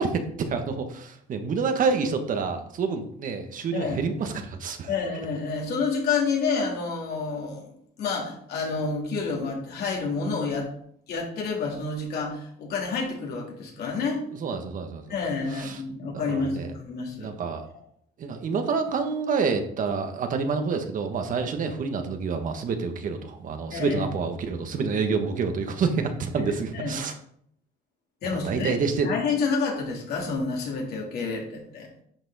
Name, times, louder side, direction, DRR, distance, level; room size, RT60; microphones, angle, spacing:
voice 1, 0.0-4.9 14.4-15.2 15.5-15.8 16.1-16.7 17.2-17.6 18.2-27.2 28.4-29.1, right 5 dB, 50° right, 6 dB, 1.5 m, -28 dB
voice 2, 4.9-7.7 8.0-10.7 11.1-14.2 15.1-17.3 23.7-24.0 26.4-27.0 28.2-28.8 29.0-31.9, left 4 dB, 70° left, -1 dB, 3.4 m, -29 dB
10.5 x 6.1 x 4.2 m, 0.65 s
cardioid pair, 110°, 17 cm